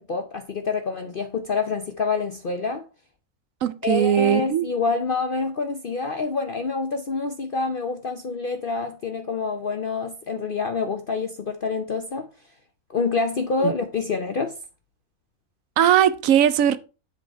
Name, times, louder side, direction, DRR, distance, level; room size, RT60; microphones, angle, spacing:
voice 1, 0.0-2.8 3.8-12.3 12.9-14.5, left 4 dB, 45° left, 0.8 m, -27 dB
voice 2, 3.6-4.7 13.6-13.7 15.8-16.8, right 10 dB, 70° right, 1.0 m, -19 dB
7.8 x 5.5 x 4.5 m
omnidirectional pair, 1.5 m